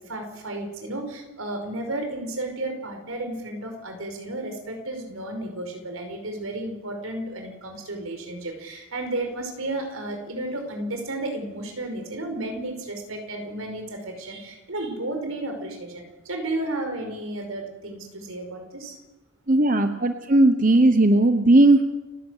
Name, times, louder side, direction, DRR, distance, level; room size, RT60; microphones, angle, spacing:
voice 1, 0.0-19.0, right 2 dB, 80° right, 4 dB, 5.2 m, -33 dB
voice 2, 19.5-21.8, right 2 dB, 40° right, 8 dB, 0.9 m, -17 dB
29.5 x 11.0 x 8.2 m, 1.1 s
head